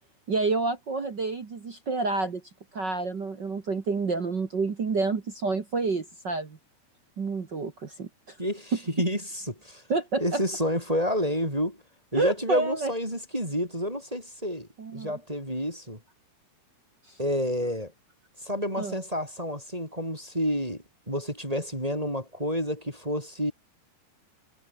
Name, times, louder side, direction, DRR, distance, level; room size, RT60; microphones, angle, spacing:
voice 1, 0.3-2.4 2.7-6.6 7.2-8.3 9.9-10.4 12.1-12.9 14.8-15.1 18.8-19.0, right 3 dB, 50° right, 1.3 m, -29 dB
voice 2, 8.4-9.8 10.2-11.8 12.1-16.0 17.2-17.9 18.4-23.5, equal, 10° right, 5.5 m, -29 dB
omnidirectional pair, 5.1 m